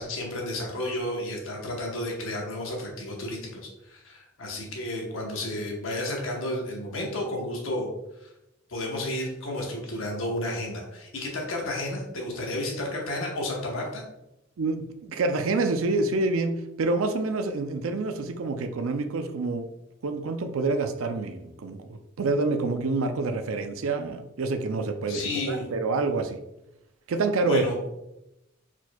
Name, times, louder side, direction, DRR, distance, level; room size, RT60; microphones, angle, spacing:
voice 1, 0.0-7.9 8.2-8.3 8.7-14.0 25.1-25.7 27.4-27.8, left 1 dB, 70° left, 0 dB, 1.0 m, -32 dB
voice 2, 14.6-19.6 20.0-21.8 22.2-26.4 27.1-27.6, right 3 dB, 75° right, 7 dB, 0.4 m, -27 dB
4.5 x 4.2 x 2.3 m, 0.89 s
head